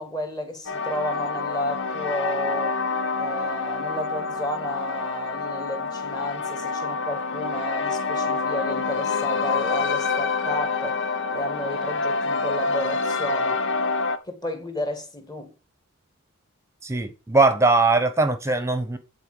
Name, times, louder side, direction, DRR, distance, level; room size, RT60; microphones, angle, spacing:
voice 1, 0.0-2.8 3.2-11.0 11.3-13.6 14.3-15.5, left 1 dB, 20° left, 2.2 m, -32 dB
sound 1, 0.7-14.2, left 4 dB, 60° left, 1.0 m, -27 dB
voice 2, 16.8-19.0, right 3 dB, 15° right, 1.1 m, -20 dB
10.5 x 4.5 x 8.0 m
head